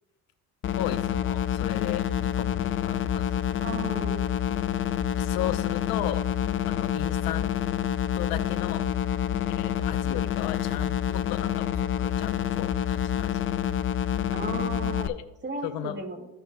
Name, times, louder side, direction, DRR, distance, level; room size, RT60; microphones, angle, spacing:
sound 1, 0.6-15.1, left 10 dB, 35° left, 0.5 m, -28 dB
voice 1, 0.8-3.4 5.2-7.5 8.1-8.9 9.6-13.7 15.0-15.2 15.6-16.0, left 12 dB, 85° left, 11 dB, 0.7 m, -35 dB
voice 2, 3.6-4.2 14.3-15.1 15.4-16.3, right 3 dB, 30° right, 4 dB, 1.8 m, -35 dB
15.5 x 5.6 x 2.2 m, 0.95 s
supercardioid pair, 80°, 35 cm